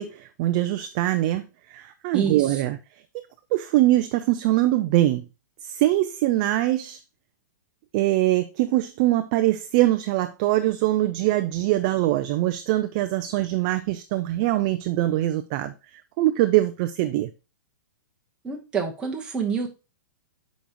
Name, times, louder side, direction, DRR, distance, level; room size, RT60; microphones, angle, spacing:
voice 1, 0.0-2.8 3.5-5.2 5.6-7.0 7.9-17.3, right 15 dB, 25° right, 0.3 m, -23 dB
voice 2, 2.1-2.6 18.4-19.7, right 6 dB, 10° right, 1.0 m, -27 dB
7.0 x 5.1 x 2.9 m
hypercardioid pair, 170°, 10 cm